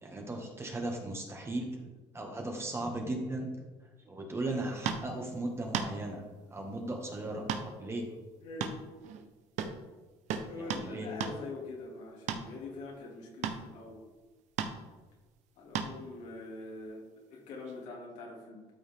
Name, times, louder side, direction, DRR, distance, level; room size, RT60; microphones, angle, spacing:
voice 1, 0.0-1.9 2.1-3.5 4.0-6.2 6.5-8.0 10.6-11.1, right 2 dB, 20° right, 1 dB, 1.8 m, -37 dB
sound 1, 4.8-5.1 5.7-5.9 7.5-7.7 8.0-8.1 8.6-9.3 9.6-9.8 10.3-10.9 11.2-11.4 12.3-12.5 13.4-13.7 14.6-14.8 15.7-16.0 17.6-17.7, right 7 dB, 70° right, 0.9 m, -34 dB
voice 2, 8.4-8.8 10.5-14.0 15.6-18.7, left 3 dB, 75° left, -2 dB, 2.7 m, -44 dB
13.0 x 5.4 x 3.6 m, 1.3 s
cardioid pair, 110°, 13 cm